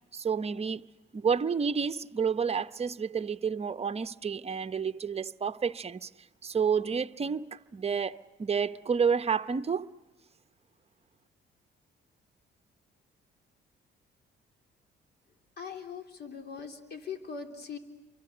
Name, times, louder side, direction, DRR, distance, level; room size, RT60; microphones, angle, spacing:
voice 1, 0.1-0.9 1.1-6.1 6.4-9.9, right 6 dB, 30° right, 0.9 m, -30 dB
voice 2, 15.6-17.8, left 6 dB, 55° left, 3.2 m, -41 dB
29.5 x 24.5 x 8.0 m
cardioid pair, 90°, 20 cm